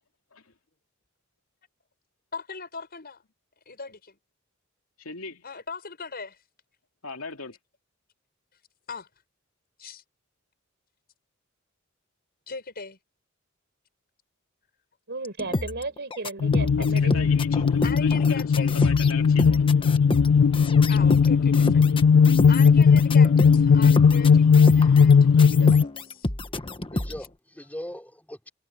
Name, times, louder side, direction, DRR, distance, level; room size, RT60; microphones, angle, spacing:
voice 1, 2.3-3.2 3.6-4.2 5.4-6.4 8.9-9.1 9.8-10.0 12.5-13.0 17.8-18.7 20.9-21.9 22.5-26.3, left 4 dB, 50° left, 6.6 m, -39 dB
voice 2, 5.0-5.4 7.0-7.6 16.6-19.7, left 4 dB, 90° left, 2.8 m, -38 dB
voice 3, 15.1-17.3, right 3 dB, 55° right, 5.0 m, -34 dB
sound 1, 15.2-25.1 25.4-27.3, left 1 dB, 25° left, 1.3 m, -30 dB
sound 2, 16.4-25.8, left 6 dB, 70° left, 0.4 m, -18 dB
voice 4, 26.3-28.5, equal, 10° left, 4.7 m, -41 dB
head